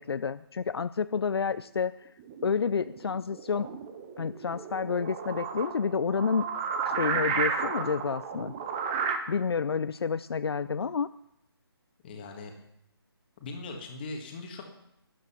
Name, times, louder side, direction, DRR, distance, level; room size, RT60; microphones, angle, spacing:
voice 1, 0.0-2.1 2.4-3.7 4.2-6.5 7.0-8.5 9.3-11.1, left 6 dB, 70° left, 14 dB, 0.5 m, -29 dB
sound 1, 2.2-9.2, right 6 dB, 15° right, 0.7 m, -33 dB
voice 2, 12.0-12.5 13.4-14.6, left 3 dB, 20° left, 3 dB, 1.7 m, -40 dB
12.5 x 11.0 x 5.8 m, 0.77 s
hypercardioid pair, 170°, 13 cm